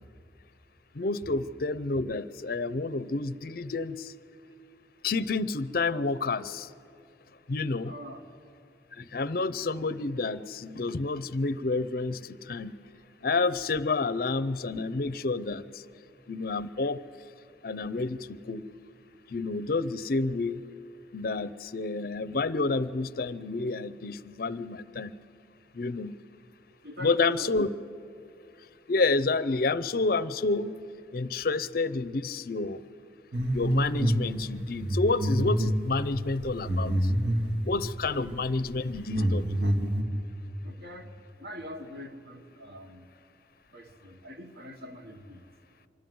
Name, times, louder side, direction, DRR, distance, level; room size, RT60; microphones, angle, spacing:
voice 1, 0.9-4.1 5.0-6.7 7.5-7.9 9.0-12.7 13.2-15.8 16.3-17.0 17.6-18.6 19.3-20.6 21.1-25.1 25.7-26.1 27.0-27.7 28.9-30.7 31.1-32.8 33.5-37.1 37.6-39.6, left 3 dB, 55° left, 15 dB, 0.6 m, -29 dB
voice 2, 7.8-8.2 26.8-27.5 38.1-38.2 40.6-41.1 41.4-43.0 43.7-45.4, equal, 60° right, 5 dB, 1.4 m, -43 dB
sound 1, 33.3-34.2 34.6-37.6 38.3-38.4 38.8-40.0, right 1 dB, 75° right, 2.1 m, -27 dB
25.0 x 13.0 x 9.4 m, 2.6 s
head